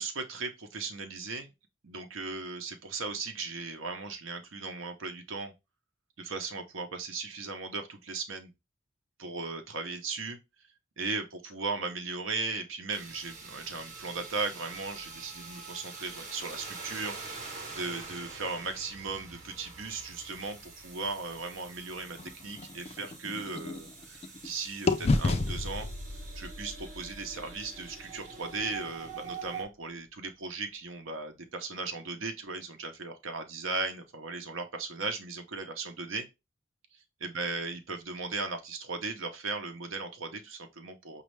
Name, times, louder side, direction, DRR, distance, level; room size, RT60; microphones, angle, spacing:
voice 1, 0.0-1.5 1.8-5.5 6.2-8.5 9.2-10.4 11.0-17.2 17.7-25.9 26.4-36.3 37.2-41.2, right 4 dB, 80° right, 0.7 m, -37 dB
sound 1, 12.9-29.6, right 4 dB, 40° right, 0.9 m, -45 dB
sound 2, 22.2-24.5 24.9-28.8, left 3 dB, 30° left, 0.3 m, -33 dB
5.2 x 2.3 x 3.1 m
head